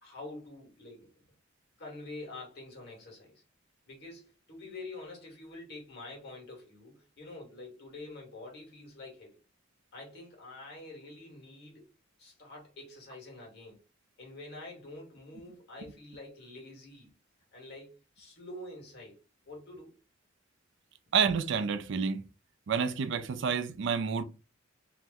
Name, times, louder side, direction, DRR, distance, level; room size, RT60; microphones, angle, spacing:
voice 1, 0.0-1.1 1.8-3.4 3.9-9.4 9.9-11.9 12.2-13.8 14.2-17.1 17.5-19.2 19.4-19.9, left 2 dB, 55° left, 1.4 m, -47 dB
voice 2, 21.1-22.2 22.7-24.2, right 6 dB, 65° right, 0.4 m, -29 dB
2.8 x 2.1 x 3.4 m
head